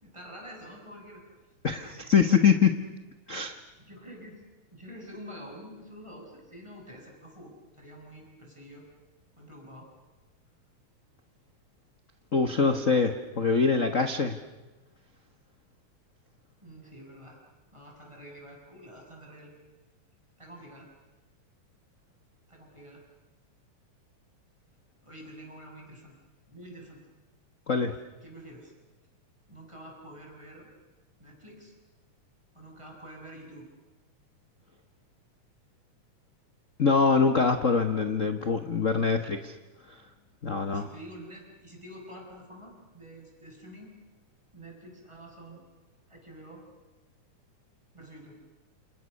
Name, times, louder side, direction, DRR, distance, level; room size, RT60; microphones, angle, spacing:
voice 1, 0.0-1.2 1.8-2.1 3.8-4.4 4.7-8.8 9.4-9.9 12.5-12.8 16.6-17.4 17.7-19.5 20.4-20.9 22.5-23.0 25.0-26.2 26.5-27.0 28.2-28.7 29.5-30.7 31.2-31.7 32.5-33.7 40.7-44.0 44.5-45.6 46.1-46.6 47.9-48.4, equal, 10° right, 0 dB, 6.4 m, -47 dB
voice 2, 1.6-2.8 3.3-3.6 12.3-14.4 27.7-27.9 36.8-39.5 39.9-40.0 40.4-40.9, left 5 dB, 80° left, 8 dB, 0.7 m, -24 dB
28.5 x 28.0 x 6.5 m, 1.2 s
omnidirectional pair, 3.5 m